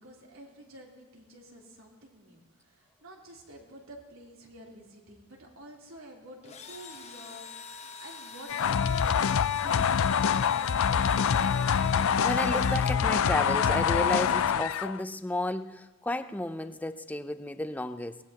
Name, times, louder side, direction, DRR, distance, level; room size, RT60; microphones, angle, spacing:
voice 1, 0.0-10.9, right 1 dB, 70° right, -2 dB, 3.4 m, -50 dB
Engine / Drill, 6.4-13.8, left 5 dB, 30° left, 1.1 m, -44 dB
sound 1, 8.5-15.0, left 7 dB, 65° left, 0.4 m, -25 dB
voice 2, 11.9-18.2, left 1 dB, 5° left, 10 dB, 0.5 m, -33 dB
23.5 x 19.0 x 2.9 m, 1.3 s
head